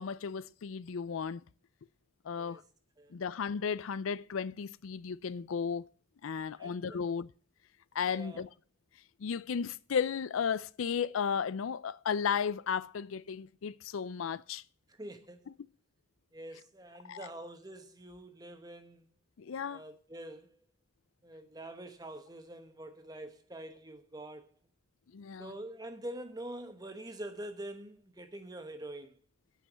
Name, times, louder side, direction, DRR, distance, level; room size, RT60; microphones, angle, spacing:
voice 1, 0.0-1.4 2.2-2.6 3.1-5.8 6.2-7.3 7.9-8.5 9.2-14.6 17.1-17.3 19.4-19.8 25.1-25.5, left 6 dB, 90° left, 0.4 m, -34 dB
voice 2, 6.6-7.0 8.0-8.5 14.9-15.5 16.3-19.1 19.7-20.6 21.2-24.5 25.4-29.2, right 1 dB, 20° right, 1.0 m, -45 dB
9.1 x 5.6 x 7.4 m
head